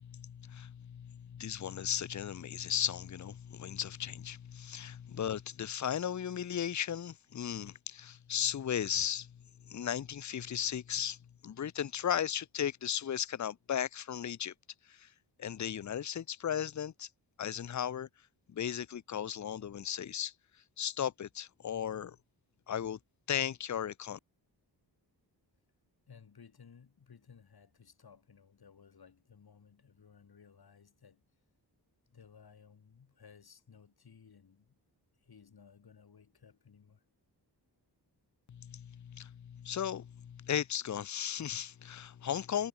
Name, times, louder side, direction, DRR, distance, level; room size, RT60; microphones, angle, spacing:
voice 1, 0.0-9.3 9.7-11.2 11.4-14.5 15.0-15.1 15.4-17.1 17.4-18.1 18.5-20.3 20.8-22.2 22.7-23.0 23.3-24.2 38.5-42.7, left 9 dB, 45° left, 0.7 m, -36 dB
voice 2, 26.1-31.2 32.1-34.8 35.1-37.0, left 6 dB, 60° left, 7.4 m, -58 dB
wide cardioid pair, 150°, 41 cm